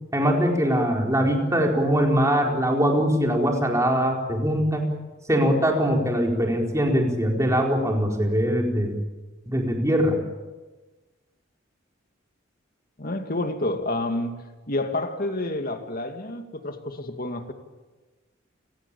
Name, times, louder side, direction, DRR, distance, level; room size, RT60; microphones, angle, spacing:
voice 1, 0.1-4.9 5.3-9.0 9.5-10.2, equal, 15° right, 1 dB, 4.5 m, -22 dB
voice 2, 13.0-14.3 14.7-17.5, left 2 dB, 45° left, 6 dB, 2.5 m, -29 dB
29.5 x 18.0 x 8.6 m, 1.2 s
head